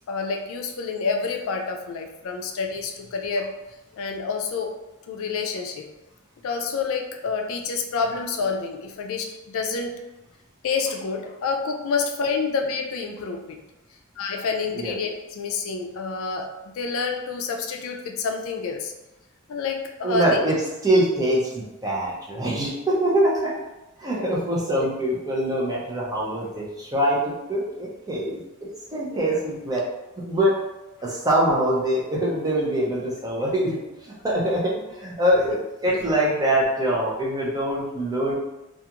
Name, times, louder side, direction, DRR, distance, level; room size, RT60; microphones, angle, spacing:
voice 1, 0.1-3.6 3.9-4.8 5.1-5.9 6.4-10.0 10.6-13.6 14.2-18.9 19.5-20.3 24.1-24.4 29.1-29.3, left 4 dB, 65° left, 3 dB, 0.3 m, -28 dB
voice 2, 20.0-20.6 20.8-23.6 24.0-28.4 28.9-29.8 30.2-30.5 31.0-38.4, right 1 dB, 15° right, -5 dB, 0.6 m, -24 dB
2.4 x 2.4 x 2.8 m, 0.98 s
head